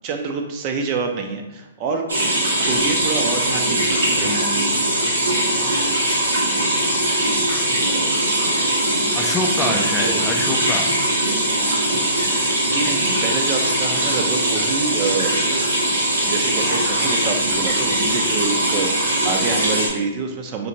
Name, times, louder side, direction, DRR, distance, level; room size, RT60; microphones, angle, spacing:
voice 1, 0.0-2.0 2.7-4.3 9.5-10.2 12.7-15.3 15.8-20.7, right 4 dB, 35° right, 4 dB, 0.6 m, -27 dB
sound 1, 2.1-19.9, right 1 dB, 85° right, 1.5 m, -20 dB
voice 2, 4.2-4.8 9.1-11.0, left 3 dB, 10° left, 3 dB, 0.4 m, -27 dB
5.1 x 2.4 x 2.9 m, 1.0 s
hypercardioid pair, 125°, 0 cm